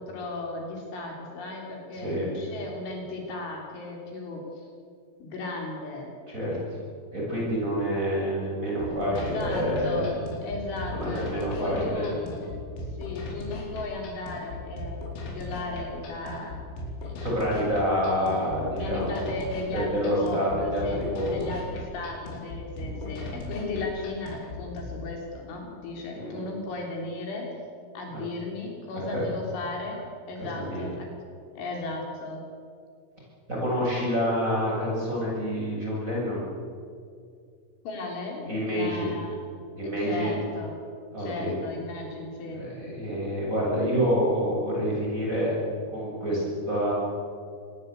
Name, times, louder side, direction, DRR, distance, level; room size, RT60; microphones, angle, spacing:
voice 1, 0.0-4.7 5.2-6.1 9.2-10.1 10.4-12.2 13.0-16.5 17.0-17.1 18.6-27.5 28.0-30.0 30.3-31.1 31.6-32.4 37.9-39.4 39.8-40.8 41.2-42.6, left 3 dB, 70° left, 0 dB, 5.8 m, -36 dB
voice 2, 6.3-6.6 7.1-10.2 10.9-13.0 17.2-19.4 19.7-21.4 22.8-23.2 26.1-26.5 28.1-28.2 29.1-29.2 30.5-30.9 33.5-36.5 38.5-39.2 39.8-40.4 41.1-41.5 42.5-45.5 45.9-46.9, equal, 15° right, -4 dB, 7.9 m, -28 dB
sound 1, 8.8-24.8, left 1 dB, 90° left, 7.0 m, -38 dB
25.5 x 19.5 x 8.3 m, 2.2 s
omnidirectional pair, 5.9 m